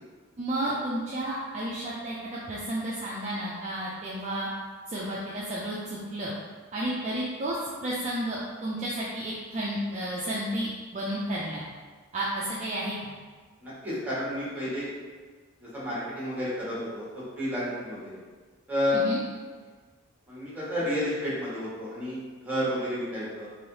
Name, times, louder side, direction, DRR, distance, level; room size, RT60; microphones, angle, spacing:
voice 1, 0.4-4.5 4.9-6.3 6.7-11.6 12.1-13.1 18.9-19.2, right 1 dB, 35° right, -6 dB, 0.4 m, -32 dB
voice 2, 13.6-14.9 15.6-18.1 18.7-19.0 20.3-23.5, equal, 10° right, -9 dB, 1.2 m, -31 dB
3.3 x 2.6 x 2.7 m, 1.4 s
head